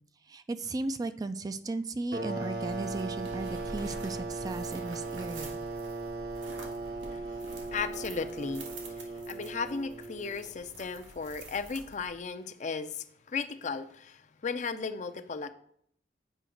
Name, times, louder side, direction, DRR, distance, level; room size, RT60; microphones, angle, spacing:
voice 1, 0.3-5.6, right 2 dB, 20° right, 10 dB, 0.3 m, -36 dB
sound 1, 2.1-10.5, right 3 dB, 60° right, 0.9 m, -38 dB
sound 2, 2.4-12.3, right 2 dB, 90° right, 1.7 m, -48 dB
voice 2, 7.7-8.7 9.3-15.5, left 5 dB, 40° left, 10 dB, 0.5 m, -35 dB
8.1 x 5.1 x 3.8 m, 0.66 s
head